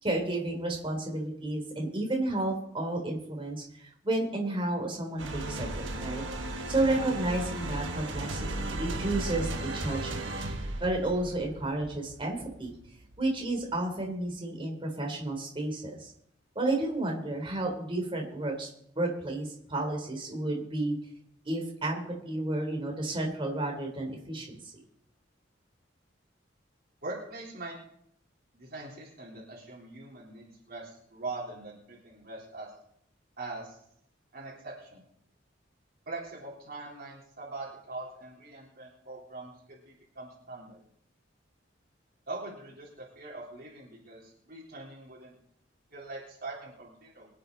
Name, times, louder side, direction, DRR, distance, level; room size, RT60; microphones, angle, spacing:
voice 1, 0.0-6.2 6.7-10.3 10.8-12.7 13.2-16.1 16.6-18.7 19.0-21.0 21.5-24.7, right 2 dB, 30° right, 1 dB, 3.6 m, -31 dB
sound 1, 5.2-13.7, right 1 dB, 85° right, 1.5 m, -36 dB
voice 2, 27.0-27.7 28.5-32.7 33.4-33.8 34.3-35.0 36.1-40.8 42.3-45.3 45.9-47.3, right 2 dB, 55° right, -5 dB, 3.8 m, -42 dB
24.5 x 8.7 x 4.0 m, 0.72 s
head